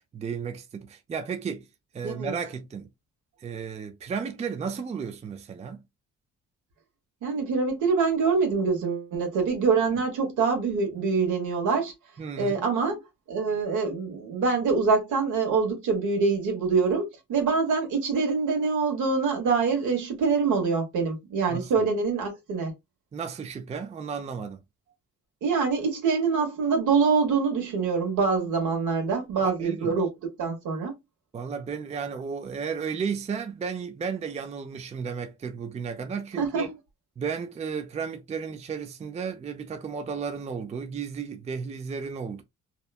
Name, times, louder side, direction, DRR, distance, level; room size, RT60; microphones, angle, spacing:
voice 1, 0.0-1.7 1.9-2.9 3.4-5.8 12.2-12.6 21.5-21.7 23.1-24.6 29.4-30.0 31.3-36.7 37.2-42.4, right 6 dB, 20° right, 0.4 m, -33 dB
voice 2, 2.0-2.3 7.2-11.9 12.4-13.0 13.3-22.7 25.4-30.1 30.4-31.0 36.4-36.7, right 5 dB, 80° right, 1.2 m, -25 dB
2.9 x 2.1 x 2.3 m
cardioid pair, 90°, 30 cm